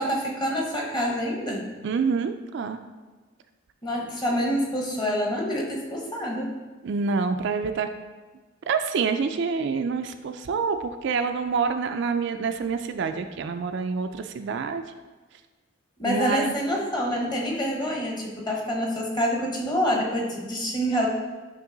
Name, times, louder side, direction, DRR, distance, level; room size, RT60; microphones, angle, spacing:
voice 1, 0.0-1.7 3.8-6.5 16.0-21.1, equal, 20° left, -1 dB, 1.0 m, -27 dB
voice 2, 1.8-2.8 6.8-7.9 8.7-14.8 16.0-16.6, right 5 dB, 60° right, 7 dB, 0.4 m, -27 dB
8.8 x 3.0 x 3.8 m, 1.3 s
head